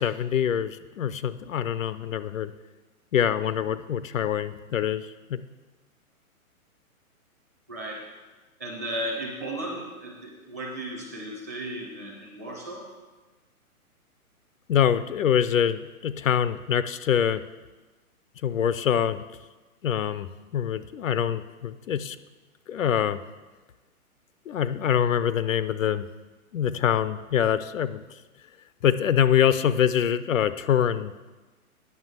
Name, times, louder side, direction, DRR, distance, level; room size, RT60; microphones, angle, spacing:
voice 1, 0.0-2.5 3.1-5.4 14.7-17.4 18.4-19.2 19.8-20.3 20.5-22.2 22.7-23.2 24.5-26.1 26.5-28.0 28.8-31.1, left 9 dB, 60° left, 13 dB, 0.5 m, -24 dB
voice 2, 7.7-8.1 8.6-12.9, right 1 dB, 10° right, -3 dB, 0.6 m, -35 dB
9.5 x 6.0 x 7.6 m, 1.2 s
hypercardioid pair, 170°, 44 cm